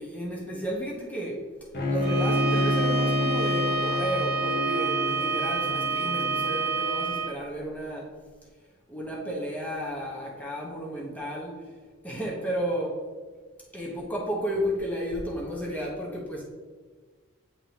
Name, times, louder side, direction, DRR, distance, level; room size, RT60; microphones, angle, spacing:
voice 1, 0.0-1.4 1.9-8.2 8.9-11.7 12.0-13.0 13.7-16.5, equal, 10° left, -3 dB, 1.1 m, -32 dB
Bowed string instrument, 1.7-6.8, left 1 dB, 50° left, 0.8 m, -28 dB
Bowed string instrument 2, 2.0-7.3, right 3 dB, 50° right, 0.6 m, -28 dB
9.2 x 3.7 x 3.3 m, 1.5 s
head